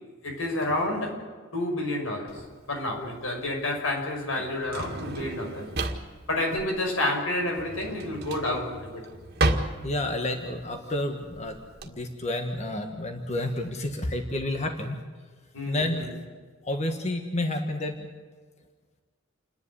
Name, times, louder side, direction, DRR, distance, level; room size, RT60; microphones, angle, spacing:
voice 1, 0.2-1.2 1.5-2.4 2.7-5.7 6.3-9.0 15.5-16.1, left 1 dB, 90° left, 2 dB, 5.7 m, -29 dB
Drawer open or close, 2.3-11.9, right 2 dB, 50° right, 1.9 m, -33 dB
voice 2, 9.8-11.6 11.8-15.0 15.7-16.1 16.6-18.0, left 1 dB, 35° left, 4 dB, 1.5 m, -30 dB
29.0 x 11.0 x 9.8 m, 1.5 s
head